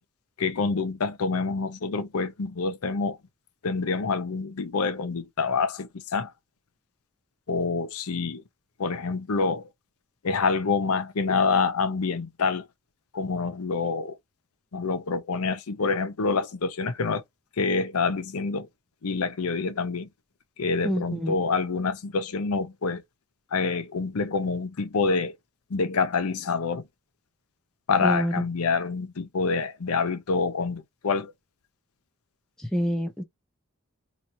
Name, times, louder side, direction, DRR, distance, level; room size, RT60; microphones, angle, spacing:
voice 1, 0.4-3.2 3.6-6.3 7.5-8.4 8.8-9.7 10.2-12.7 13.1-14.2 14.7-17.2 17.6-18.7 19.0-20.1 20.6-23.0 23.5-25.4 25.7-26.8 27.9-31.3, left 4 dB, 80° left, 0.6 m, -27 dB
voice 2, 20.8-21.3 28.0-28.3 32.7-33.2, equal, 5° left, 0.7 m, -26 dB
3.0 x 2.6 x 4.2 m
head